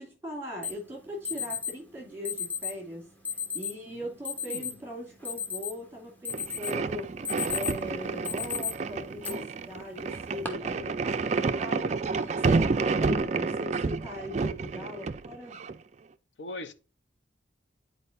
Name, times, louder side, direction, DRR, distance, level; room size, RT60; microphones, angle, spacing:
voice 1, 0.0-3.1 3.5-7.1 7.5-15.6, equal, 10° right, 2.5 m, -40 dB
Alarm, 0.6-0.7 1.2-1.7 2.2-2.7 3.2-3.7 4.2-4.7 5.1-5.9 6.2-6.8 7.1-7.8 8.2-8.7 9.2-9.3 10.1-10.5, left 7 dB, 10° left, 1.0 m, -33 dB
sound 1, 6.3-15.8, right 4 dB, 35° right, 0.3 m, -30 dB
voice 2, 16.4-16.7, left 2 dB, 65° left, 0.7 m, -41 dB
10.0 x 4.4 x 2.5 m
head